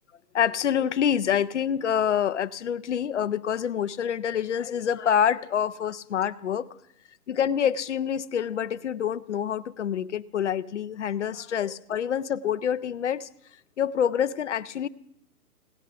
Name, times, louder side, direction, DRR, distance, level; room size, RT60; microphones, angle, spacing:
voice 1, 0.3-6.7 7.3-13.3 13.8-14.9, left 8 dB, 50° left, 15 dB, 0.6 m, -26 dB
17.5 x 11.0 x 6.8 m, 0.72 s
hypercardioid pair, 155°, 48 cm